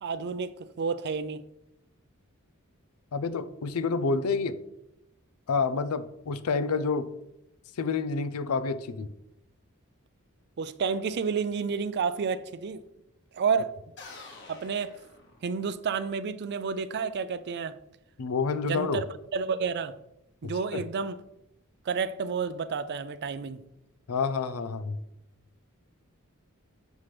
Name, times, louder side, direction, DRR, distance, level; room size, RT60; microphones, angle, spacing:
voice 1, 0.0-1.4 10.6-12.8 13.3-13.7 14.5-15.0 15.4-17.8 18.6-19.1 19.3-19.9 20.4-21.2 21.9-23.6, right 5 dB, 50° right, 0.4 m, -30 dB
voice 2, 3.1-4.6 5.5-7.1 7.8-9.1 18.2-19.0 20.4-20.8 24.1-25.0, left 4 dB, 85° left, 0.5 m, -28 dB
sound 1, 14.0-15.9, left 3 dB, 55° left, 1.3 m, -48 dB
7.2 x 5.8 x 3.2 m
head